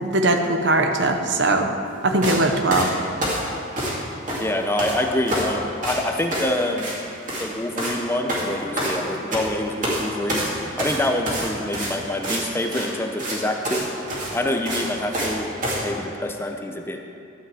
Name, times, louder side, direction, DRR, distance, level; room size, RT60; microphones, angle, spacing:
voice 1, 0.0-1.7 2.0-2.9, right 2 dB, 60° right, 5 dB, 0.9 m, -20 dB
sound 1, 2.2-2.4 2.7-4.0 4.3-5.0 5.3-5.5 5.8-6.0 6.3-6.5 6.8-7.0 7.2-7.5 7.8-8.0 8.3-9.5 9.8-10.0 10.3-12.4 12.7-12.9 13.2-13.4 13.6-13.8 14.1-15.3 15.6-15.8, right 1 dB, 40° right, 2.5 m, -26 dB
voice 2, 4.4-6.9 7.4-10.4 10.8-13.9 14.3-15.5 15.8-17.0, left 1 dB, 10° left, 3 dB, 0.7 m, -26 dB
12.5 x 5.9 x 7.7 m, 2.5 s
head